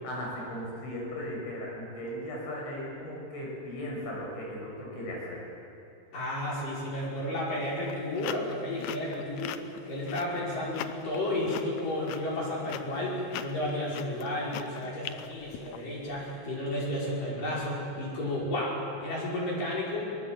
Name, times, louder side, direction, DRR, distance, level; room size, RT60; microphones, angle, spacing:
voice 1, 0.0-5.4, equal, 70° left, -2 dB, 8.8 m, -37 dB
voice 2, 6.1-9.5 9.9-20.1, left 1 dB, 45° left, -5 dB, 6.9 m, -32 dB
sound 1, 7.7-16.2, left 11 dB, 90° left, 2.1 m, -41 dB
23.0 x 22.5 x 7.8 m, 2.7 s
omnidirectional pair, 5.5 m